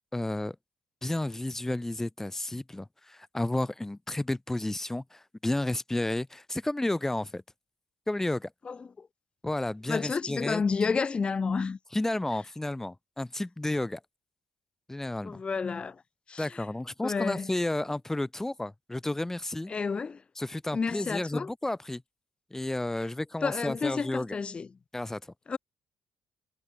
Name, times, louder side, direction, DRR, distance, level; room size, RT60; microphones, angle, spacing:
voice 1, 0.1-0.6 1.0-7.4 8.1-8.5 9.4-10.6 11.9-14.0 14.9-15.4 16.4-19.7 20.4-22.0 22.5-24.3 24.9-25.2, left 1 dB, 15° left, 2.0 m, -32 dB
voice 2, 8.6-9.1 9.9-11.8 15.2-16.0 16.3-16.6 17.0-17.5 19.7-20.2 20.7-21.5 23.4-24.7 25.5-25.6, left 5 dB, 35° left, 1.3 m, -30 dB
hypercardioid pair, 45°, 3 cm